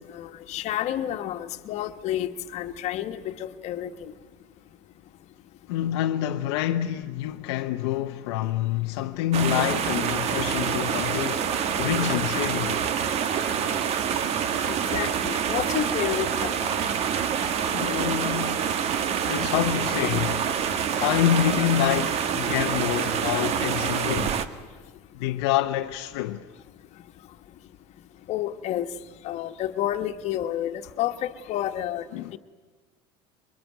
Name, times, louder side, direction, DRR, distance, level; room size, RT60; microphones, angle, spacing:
voice 1, 0.2-3.9 14.7-16.5 28.3-28.9 29.2-32.0 32.3-32.4, left 12 dB, 55° left, 1.5 m, -30 dB
voice 2, 5.7-11.5 11.8-12.8 17.7-18.7 19.3-20.6 21.0-24.4 25.2-26.5 32.1-32.3, left 12 dB, 80° left, 0.8 m, -27 dB
sound 1, 9.3-24.5, right 8 dB, 50° right, 1.5 m, -26 dB
23.0 x 22.0 x 9.2 m
supercardioid pair, 100°, 14 cm